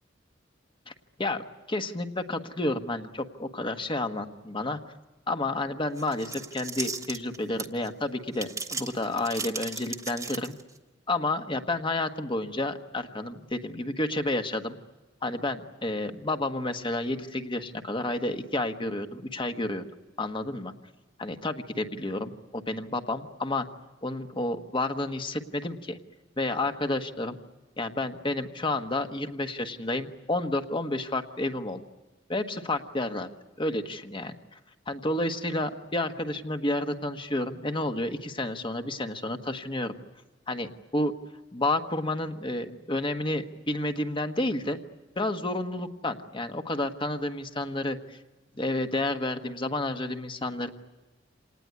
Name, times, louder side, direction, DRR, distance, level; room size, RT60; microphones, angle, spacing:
voice 1, 1.2-4.8 5.3-10.6 11.1-14.8 15.2-19.8 20.2-20.7 21.2-23.7 24.0-26.0 26.4-27.4 27.8-31.8 32.3-33.3 33.6-34.3 34.9-39.9 40.5-41.1 41.5-44.8 45.1-48.2 48.5-50.7, left 2 dB, 25° left, 7 dB, 1.4 m, -30 dB
sound 1, 6.0-7.9 8.3-10.8, right 4 dB, 15° right, 1.4 m, -36 dB
27.0 x 19.0 x 9.6 m, 1.2 s
head